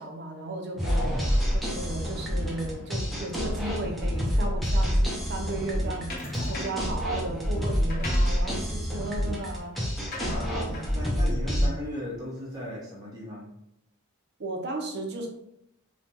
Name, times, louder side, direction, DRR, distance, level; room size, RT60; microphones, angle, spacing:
voice 1, 0.0-9.8 10.1-10.5 11.4-11.7 14.4-15.3, right 2 dB, 50° right, 1 dB, 0.6 m, -35 dB
sound 1, 0.8-11.7, equal, ahead, 0.5 m, -27 dB
voice 2, 0.8-1.3 10.2-13.6, left 1 dB, 15° right, -5 dB, 1.0 m, -37 dB
sound 2, 6.1-6.9 7.7-12.4, left 1 dB, 40° left, 0.7 m, -40 dB
3.2 x 2.2 x 2.8 m, 0.78 s
head